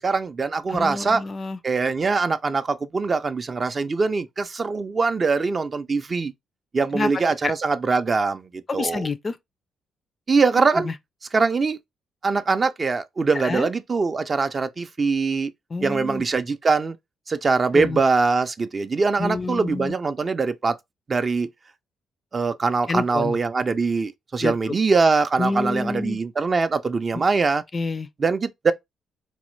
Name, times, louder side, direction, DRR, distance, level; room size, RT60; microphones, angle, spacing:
voice 1, 0.0-1.2 1.6-6.3 6.7-9.0 10.3-10.9 11.3-11.8 12.2-15.5 15.8-17.0 17.3-20.8 21.1-21.5 22.3-27.6 28.2-28.7, right 4 dB, 35° right, 0.4 m, -22 dB
voice 2, 0.7-1.6 6.9-7.1 7.4-7.5 8.7-9.4 10.8-10.9 13.4-13.7 15.7-16.2 17.7-18.0 19.2-19.9 22.9-23.4 24.4-24.5 25.4-26.2 27.7-28.1, left 3 dB, 30° left, 0.4 m, -28 dB
4.0 x 2.1 x 3.0 m
cardioid pair, 90°, 0 cm